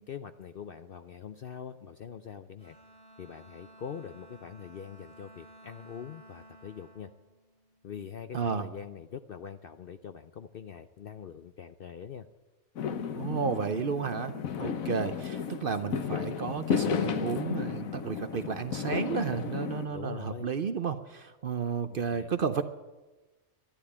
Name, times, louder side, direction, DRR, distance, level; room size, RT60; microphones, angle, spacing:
voice 1, 0.0-2.8 3.2-7.1 7.8-12.3 19.9-20.5 21.9-22.3, left 7 dB, 60° left, 10 dB, 0.6 m, -43 dB
Bowed string instrument, 2.6-8.1, right 1 dB, 5° left, 3.1 m, -55 dB
voice 2, 8.3-8.7 13.1-14.3 14.6-22.6, right 6 dB, 50° right, 10 dB, 0.7 m, -32 dB
Fireworks, 12.8-19.9, left 7 dB, 75° left, 1.4 m, -33 dB
12.5 x 12.0 x 8.6 m, 1.2 s
omnidirectional pair, 1.4 m